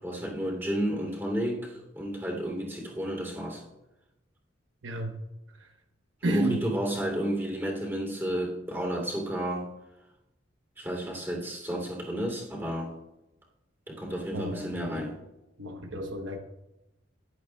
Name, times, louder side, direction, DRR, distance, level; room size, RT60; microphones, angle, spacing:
voice 1, 0.0-3.6 6.3-9.7 10.8-12.9 13.9-15.1, equal, 10° right, -1 dB, 3.1 m, -31 dB
voice 2, 4.8-5.2 5.6-5.7 6.2-6.6 14.3-15.1 15.6-16.4, right 1 dB, 80° right, 4 dB, 1.1 m, -32 dB
18.0 x 11.5 x 2.3 m, 0.95 s
head